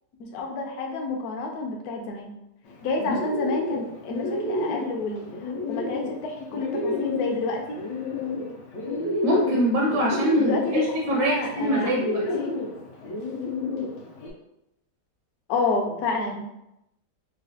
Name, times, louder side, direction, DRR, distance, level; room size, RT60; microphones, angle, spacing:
voice 1, 0.3-2.3 2.8-7.8 10.4-10.9 11.1-11.9 12.4-12.5 15.5-16.5, left 3 dB, 70° left, 1 dB, 1.0 m, -29 dB
Bird, 2.7-14.3, left 2 dB, 85° left, 1.3 m, -31 dB
voice 2, 9.2-10.8 11.1-12.2, equal, 75° right, -2 dB, 1.2 m, -23 dB
4.0 x 2.1 x 2.7 m, 0.84 s
omnidirectional pair, 1.8 m